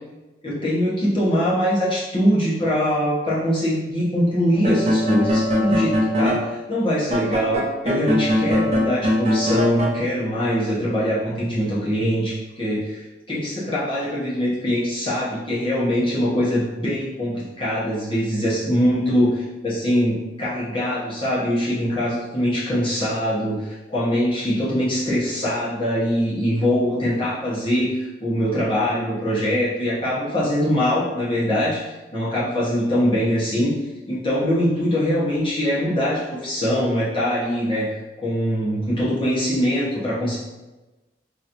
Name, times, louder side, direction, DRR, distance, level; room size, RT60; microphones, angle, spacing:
voice 1, 0.4-33.7 34.1-37.9 38.2-40.4, equal, 30° left, -8 dB, 1.0 m, -23 dB
sound 1, 4.5-6.4 7.1-9.9, equal, 40° right, 0.6 m, -21 dB
4.2 x 3.0 x 2.6 m, 1.1 s
head